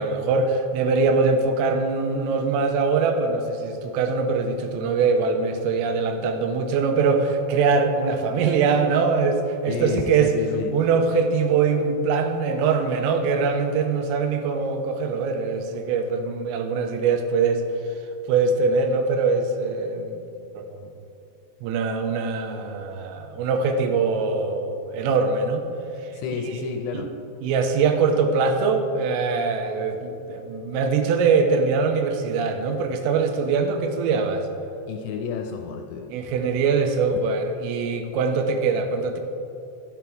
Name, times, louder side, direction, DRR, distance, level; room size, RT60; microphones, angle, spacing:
voice 1, 0.0-10.3 10.7-17.6 18.3-20.2 20.5-20.6 21.6-25.7 26.9-27.1 27.4-34.5 36.1-39.2, right 4 dB, 90° right, 5 dB, 3.4 m, -22 dB
voice 2, 9.7-10.7 26.1-27.1 34.9-36.1, left 6 dB, 80° left, 3 dB, 2.8 m, -30 dB
12.0 x 8.1 x 4.5 m, 2.8 s
omnidirectional pair, 5.9 m